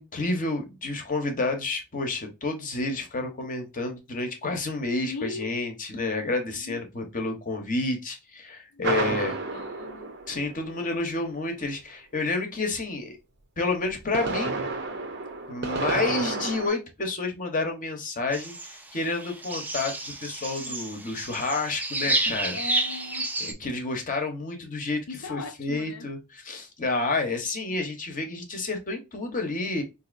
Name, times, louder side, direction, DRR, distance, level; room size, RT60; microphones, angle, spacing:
voice 1, 0.0-9.3 10.3-13.2 13.6-14.7 15.5-22.6 23.4-25.0 25.3-29.8, left 3 dB, 40° left, 0.9 m, -30 dB
voice 2, 5.0-5.5 6.6-6.8 8.7-10.1 22.5-23.3 25.1-26.1, left 3 dB, 80° left, 0.6 m, -39 dB
sound 1, 8.8-10.9 13.9-16.7, right 3 dB, 50° right, 0.7 m, -30 dB
sound 2, 18.3-23.5, right 2 dB, 10° right, 0.4 m, -30 dB
3.9 x 2.7 x 2.5 m
head